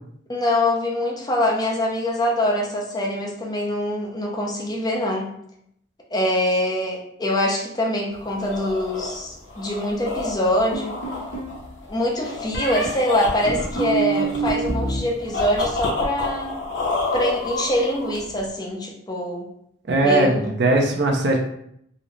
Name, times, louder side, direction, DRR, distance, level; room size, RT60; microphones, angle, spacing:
voice 1, 0.3-5.3 6.1-10.9 11.9-16.6 17.1-19.5 20.0-20.5, left 1 dB, 20° left, -1 dB, 0.5 m, -24 dB
sound 1, 8.1-18.5, left 3 dB, 90° left, 0.7 m, -30 dB
sound 2, 10.7-11.5 12.5-12.9 13.5-15.0 15.3-15.9, right 4 dB, 70° left, 1.0 m, -27 dB
voice 2, 19.9-21.4, right 2 dB, 65° right, 1 dB, 0.5 m, -19 dB
3.8 x 2.0 x 3.0 m, 0.72 s
head